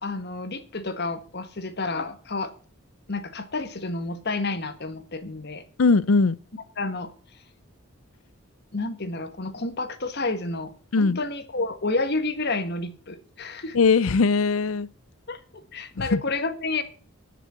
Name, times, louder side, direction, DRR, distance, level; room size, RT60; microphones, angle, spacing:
voice 1, 0.0-2.5 3.1-5.6 6.5-7.1 8.7-13.8 15.3-15.4 15.7-16.8, left 3 dB, 50° left, 1.4 m, -30 dB
voice 2, 5.8-6.4 10.9-11.2 13.7-14.9 16.0-16.2, left 4 dB, 75° left, 0.6 m, -20 dB
10.5 x 7.0 x 7.3 m
head